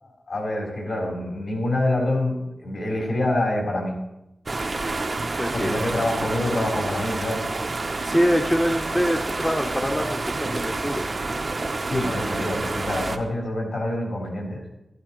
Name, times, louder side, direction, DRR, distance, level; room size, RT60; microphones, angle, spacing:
voice 1, 0.0-4.0 5.5-7.4 11.9-14.6, left 1 dB, 75° left, -2 dB, 3.6 m, -26 dB
sound 1, 4.5-13.2, right 3 dB, 50° right, 0.7 m, -28 dB
voice 2, 5.4-5.7 8.0-11.0 11.9-12.0, equal, 15° left, 4 dB, 0.7 m, -24 dB
12.5 x 12.5 x 3.0 m, 0.90 s
cardioid pair, 60°, 0 cm